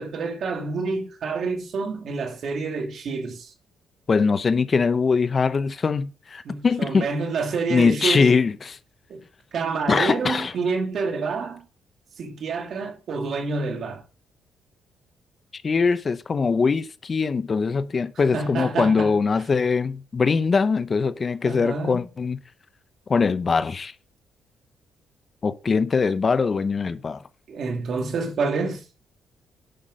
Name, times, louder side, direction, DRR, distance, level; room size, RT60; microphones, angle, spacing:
voice 1, 0.0-3.5 6.4-8.3 9.1-9.2 9.5-11.6 12.2-14.0 18.3-19.1 21.4-22.1 27.5-28.9, right 4 dB, 60° right, 2.4 m, -28 dB
voice 2, 4.1-7.1 7.7-8.8 9.9-10.5 15.5-22.4 23.1-23.9 25.4-27.2, left 5 dB, 35° left, 0.7 m, -22 dB
10.5 x 5.8 x 5.3 m
cardioid pair, 90°, 0 cm